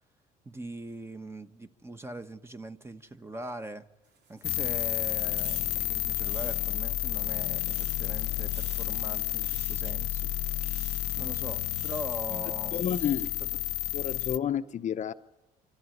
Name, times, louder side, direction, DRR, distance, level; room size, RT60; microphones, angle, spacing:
voice 1, 0.4-3.9 4.3-10.3 11.2-12.8, right 1 dB, 15° right, 1.2 m, -41 dB
sound 1, 4.0-7.1 7.5-8.2 8.5-9.0 9.4-9.9 10.6-11.3 11.6-12.2 12.6-13.4, right 6 dB, 90° right, 2.9 m, -51 dB
sound 2, 4.4-14.4, left 17 dB, 80° left, 0.6 m, -31 dB
voice 2, 12.4-13.3 13.9-15.1, left 9 dB, 45° left, 0.8 m, -31 dB
25.5 x 13.5 x 8.0 m
cardioid pair, 110°, 17 cm